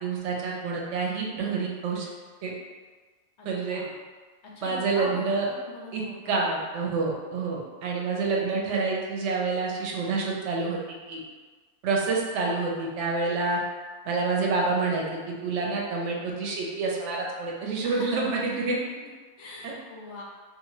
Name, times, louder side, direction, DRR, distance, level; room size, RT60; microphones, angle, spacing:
voice 1, 0.0-2.1 2.4-2.5 3.5-3.8 4.6-5.5 5.9-10.8 11.1-11.2 11.8-13.6 14.1-18.8 19.6-19.7, right 4 dB, 65° right, -2 dB, 0.8 m, -28 dB
voice 2, 4.6-6.5 17.8-18.3 19.4-20.2, left 2 dB, 65° left, -3 dB, 0.8 m, -41 dB
2.5 x 2.4 x 3.0 m, 1.4 s
omnidirectional pair, 1.4 m